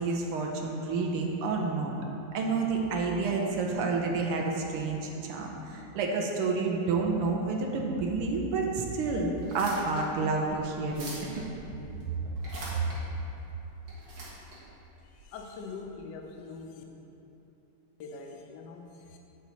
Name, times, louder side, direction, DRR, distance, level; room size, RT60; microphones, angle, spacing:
voice 1, 0.0-1.9 2.3-11.4, right 3 dB, 85° right, 0 dB, 1.7 m, -29 dB
sound 1, 9.4-15.8, right 1 dB, 55° right, 2.2 m, -45 dB
voice 2, 15.2-16.8 18.0-19.2, left 4 dB, 80° left, 3 dB, 0.9 m, -43 dB
8.3 x 6.0 x 4.0 m, 3.0 s
omnidirectional pair, 2.4 m